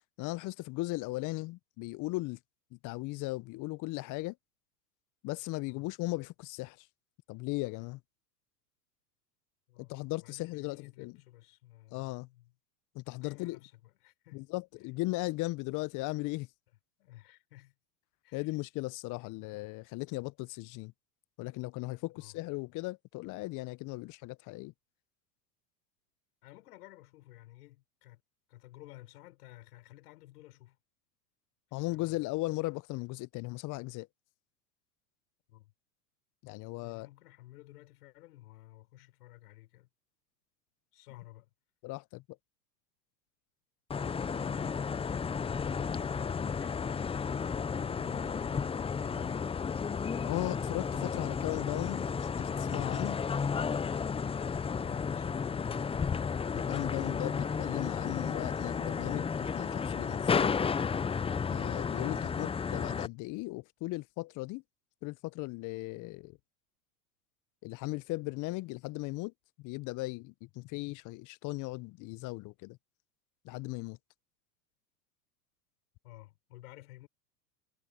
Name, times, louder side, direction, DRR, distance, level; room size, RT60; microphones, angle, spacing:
voice 1, 0.2-2.4 2.7-4.4 5.2-6.9 7.3-8.0 9.8-11.1 11.9-12.3 12.9-13.6 14.3-16.5 18.3-20.9 21.4-24.7 31.7-34.1 36.4-37.1 41.8-42.4 50.2-53.2 56.5-60.5 61.5-64.6 65.0-66.4 67.6-69.3 69.6-72.8 73.4-74.0, left 21 dB, 40° left, 0.8 m, -37 dB
voice 2, 9.7-12.5 13.2-14.5 17.0-17.7 18.2-18.6 22.2-22.4 26.4-28.2 28.5-30.8 31.7-32.2 35.5-35.7 36.8-39.9 40.9-41.5 44.2-44.8 45.6-49.4 54.7-56.0 76.0-77.1, left 17 dB, 70° left, 6.1 m, -54 dB
sound 1, 43.9-63.1, left 6 dB, 10° left, 0.7 m, -33 dB
hypercardioid pair, 95°, 47 cm